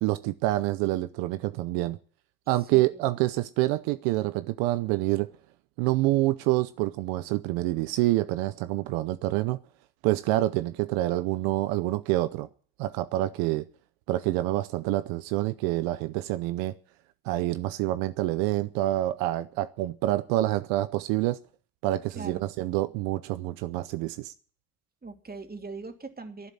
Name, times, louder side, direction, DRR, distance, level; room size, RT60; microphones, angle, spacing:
voice 1, 0.0-2.0 2.5-5.3 5.8-9.6 10.0-12.5 12.8-13.7 14.1-16.7 17.2-21.4 21.8-24.3, right 17 dB, 90° right, 0.7 m, -27 dB
voice 2, 2.6-3.0 22.1-22.5 25.0-26.5, right 3 dB, 25° right, 2.8 m, -41 dB
11.5 x 9.5 x 9.8 m
supercardioid pair, 60°, 34 cm